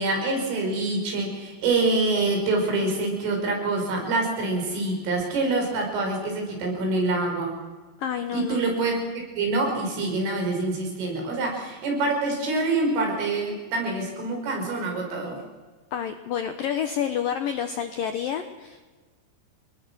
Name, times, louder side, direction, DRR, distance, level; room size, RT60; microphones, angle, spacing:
voice 1, 0.0-7.6 8.3-9.0 9.4-15.4, right 2 dB, 85° right, 1 dB, 8.2 m, -26 dB
voice 2, 8.0-8.6 15.9-18.8, left 8 dB, 80° left, 8 dB, 2.0 m, -29 dB
29.0 x 20.5 x 6.3 m, 1.3 s
omnidirectional pair, 5.6 m